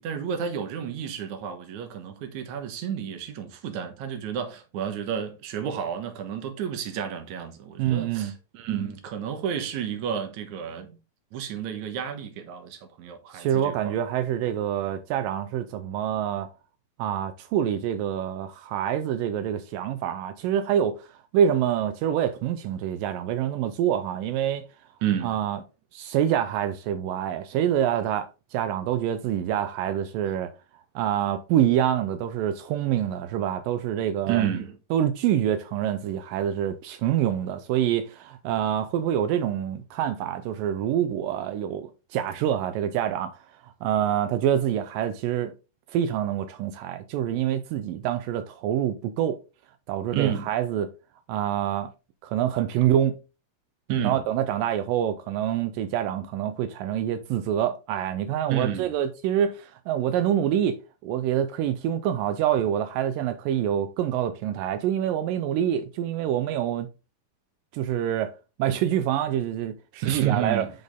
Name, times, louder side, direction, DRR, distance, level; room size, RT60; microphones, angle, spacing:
voice 1, 0.0-11.0 11.3-13.8 25.0-25.3 34.3-34.8 50.1-50.5 53.9-54.2 58.5-58.9 70.0-70.7, right 9 dB, 65° right, 2.4 m, -30 dB
voice 2, 7.8-8.3 13.3-16.5 17.0-24.7 25.2-25.6 25.9-30.5 31.0-34.5 34.9-45.5 45.9-49.4 49.9-50.9 51.3-51.9 52.2-53.2 54.0-66.9 67.7-68.3 68.6-70.7, right 10 dB, 85° right, 2.3 m, -26 dB
10.5 x 4.1 x 3.6 m
omnidirectional pair, 3.9 m